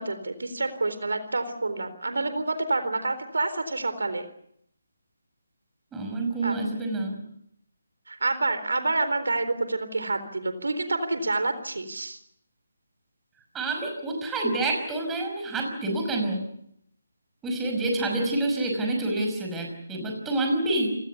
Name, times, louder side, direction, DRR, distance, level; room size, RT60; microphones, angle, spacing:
voice 1, 0.0-4.3 6.4-6.5 8.1-12.2, right 2 dB, 75° right, 10 dB, 3.9 m, -28 dB
voice 2, 5.9-7.2 13.5-16.4 17.4-21.0, right 2 dB, 10° right, 2 dB, 5.6 m, -27 dB
28.5 x 18.5 x 7.1 m, 0.71 s
figure-of-eight pair, 155°, 0 cm